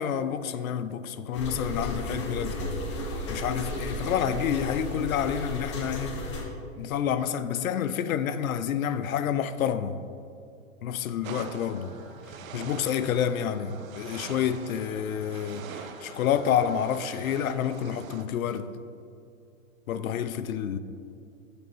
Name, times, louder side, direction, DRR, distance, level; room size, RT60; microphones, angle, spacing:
voice 1, 0.0-2.7 3.3-6.2 6.8-10.0 10.8-11.9 12.5-18.7 19.9-20.8, left 9 dB, 90° left, 0.5 m, -29 dB
sound 1, 1.3-6.4, left 1 dB, 25° left, 0.4 m, -34 dB
sound 2, 11.2-18.2, right 7 dB, 80° right, 0.6 m, -44 dB
sound 3, 11.6-17.0, right 1 dB, 30° right, 1.0 m, -49 dB
8.0 x 3.0 x 4.7 m
hypercardioid pair, 155°, 40 cm